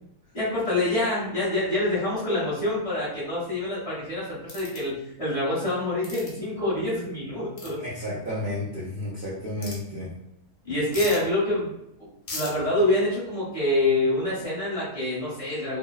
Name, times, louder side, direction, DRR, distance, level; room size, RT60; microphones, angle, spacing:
voice 1, 0.3-7.8 10.6-11.7 12.3-15.8, left 1 dB, 25° left, -11 dB, 1.0 m, -26 dB
sound 1, 4.5-4.8 6.0-6.3 7.6-7.7 9.6-9.8 10.9-11.2 12.3-12.5, left 2 dB, 60° left, 0.9 m, -35 dB
voice 2, 7.8-10.1, left 1 dB, 80° right, -8 dB, 0.4 m, -32 dB
2.7 x 2.0 x 2.2 m, 0.80 s
omnidirectional pair, 1.7 m